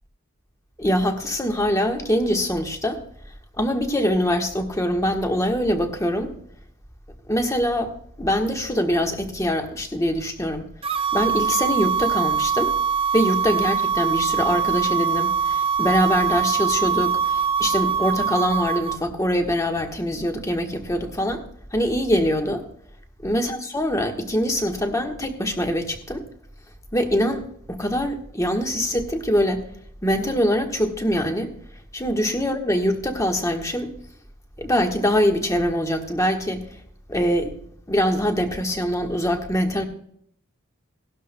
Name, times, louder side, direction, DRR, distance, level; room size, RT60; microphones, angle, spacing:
voice 1, 0.8-3.0 3.6-6.3 7.3-7.9 8.2-10.7 11.1-12.7 13.1-21.4 21.7-22.7 23.2-26.2 26.9-29.6 30.0-31.5 31.9-33.9 34.6-36.6 37.1-37.5 37.9-39.8, equal, 15° left, 1.3 m, -23 dB
sound 1, 10.8-19.0, right 6 dB, 25° right, 0.4 m, -23 dB
17.5 x 12.0 x 2.2 m
head